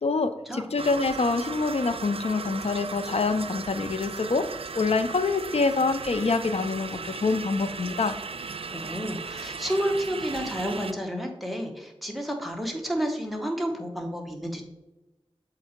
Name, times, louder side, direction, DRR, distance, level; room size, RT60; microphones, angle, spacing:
voice 1, 0.0-4.5 4.7-8.2, left 4 dB, 80° left, 10 dB, 0.5 m, -26 dB
sound 1, 0.8-10.9, right 5 dB, 65° right, 0.4 m, -37 dB
voice 2, 8.7-14.6, equal, ahead, 2 dB, 1.2 m, -30 dB
7.2 x 3.9 x 4.4 m, 0.97 s
wide cardioid pair, 55°, 10 cm